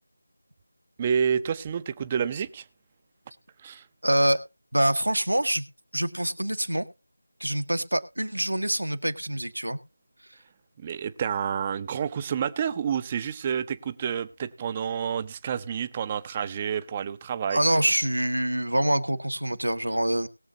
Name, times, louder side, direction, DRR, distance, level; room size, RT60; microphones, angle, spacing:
voice 1, 1.0-2.6 3.6-3.8 10.8-17.6, right 7 dB, 20° right, 0.6 m, -29 dB
voice 2, 4.0-4.4 4.7-5.7 5.9-6.8 7.4-9.8 17.5-20.3, right 1 dB, 80° right, 1.5 m, -25 dB
21.0 x 7.2 x 2.9 m
figure-of-eight pair, 165°, 0 cm